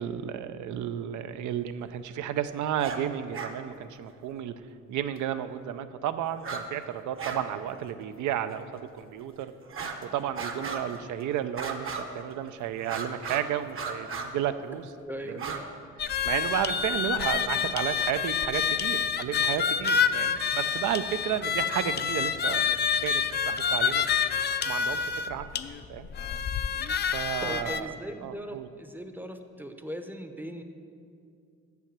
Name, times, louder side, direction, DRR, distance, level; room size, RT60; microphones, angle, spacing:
voice 1, 0.0-4.5 4.9-9.5 10.0-14.8 15.2-15.6 16.2-22.8 23.0-24.1 24.6-25.5 25.9-26.1 27.1-27.9 28.2-28.7, right 10 dB, 75° right, 11 dB, 0.5 m, -32 dB
sound 1, 2.7-3.0 3.3-3.5 5.2-5.3 6.4-6.7 6.9-7.4 7.7-7.8 8.5-8.6 9.6-10.0 10.3-11.0 11.5-12.3 12.8-13.5 13.7-14.3 15.3-15.6, right 5 dB, 45° right, 0.9 m, -36 dB
voice 2, 15.0-15.7 27.4-30.6, equal, 5° right, 7 dB, 0.6 m, -39 dB
sound 2, 16.0-27.8, left 7 dB, 35° left, 0.4 m, -28 dB
6.8 x 5.8 x 7.3 m, 2.4 s
cardioid pair, 90°, 30 cm